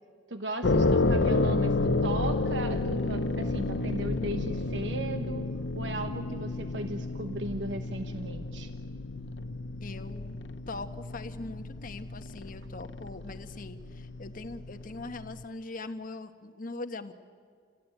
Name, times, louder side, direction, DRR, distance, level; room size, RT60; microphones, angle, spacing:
voice 1, 0.3-5.5 5.7-8.7, right 1 dB, 75° right, 7 dB, 1.2 m, -37 dB
sound 1, 0.6-15.4, left 2 dB, 70° left, 0.8 m, -31 dB
voice 2, 9.8-10.4 10.7-17.1, left 2 dB, 50° left, 8 dB, 1.2 m, -41 dB
28.0 x 17.0 x 9.2 m, 2.1 s
head